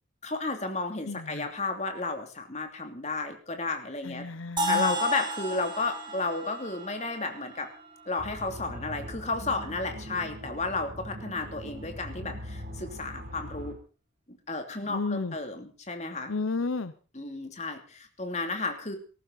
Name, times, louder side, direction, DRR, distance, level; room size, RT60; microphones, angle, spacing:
voice 1, 0.2-4.3 4.7-7.7 8.1-13.8 14.3-16.3 17.1-19.0, left 3 dB, 35° left, 5 dB, 2.9 m, -33 dB
voice 2, 1.0-1.5 4.0-4.9 14.8-15.4 16.3-16.9, left 3 dB, 80° left, 13 dB, 0.8 m, -32 dB
sound 1, 4.6-8.5, left 1 dB, 25° right, 3.5 m, -33 dB
sound 2, 8.2-13.7, equal, 40° right, 3.7 m, -41 dB
19.0 x 14.5 x 4.1 m, 0.37 s
head